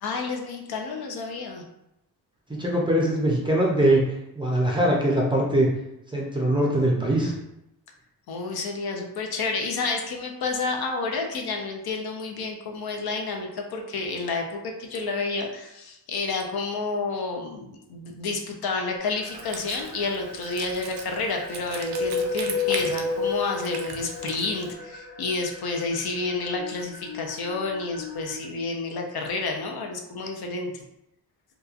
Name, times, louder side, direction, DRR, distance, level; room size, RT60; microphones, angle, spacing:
voice 1, 0.0-1.7 8.3-30.8, left 3 dB, 65° left, 2 dB, 0.5 m, -30 dB
voice 2, 2.5-4.0 4.4-5.7 6.1-7.3, right 1 dB, 10° right, -3 dB, 0.4 m, -22 dB
sound 1, 19.0-28.4, left 4 dB, 30° left, 1.1 m, -33 dB
Wind instrument woodwind instrument, 19.3-24.7, right 5 dB, 70° right, 0.5 m, -39 dB
2.9 x 2.3 x 2.4 m, 0.85 s
wide cardioid pair, 135°, 41 cm